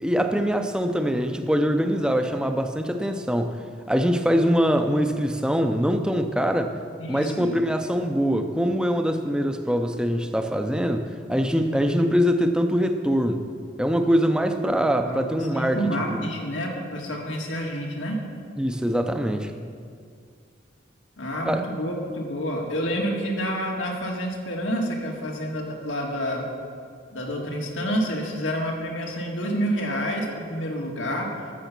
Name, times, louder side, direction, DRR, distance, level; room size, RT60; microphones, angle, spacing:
voice 1, 0.0-3.6 3.9-6.7 7.1-13.5 13.8-15.8 16.1-16.3 18.6-19.5 21.5-21.6, equal, 5° right, 6 dB, 0.6 m, -23 dB
voice 2, 7.0-7.6 15.0-15.2 15.5-18.2 21.2-26.5 27.1-31.3, equal, 90° left, 0 dB, 1.9 m, -28 dB
13.5 x 7.0 x 6.0 m, 2.2 s
head